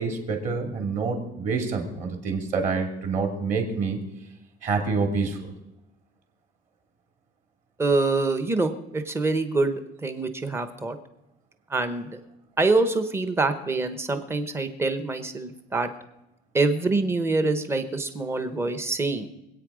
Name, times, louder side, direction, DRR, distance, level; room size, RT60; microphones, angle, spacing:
voice 1, 0.0-4.0 4.6-5.5, right 4 dB, 40° right, 3 dB, 2.7 m, -27 dB
voice 2, 7.8-11.0 11.7-12.2 12.6-15.9 16.5-19.3, right 3 dB, 15° right, 9 dB, 0.9 m, -25 dB
24.5 x 8.8 x 4.9 m, 0.92 s
cardioid pair, 175°, 20 cm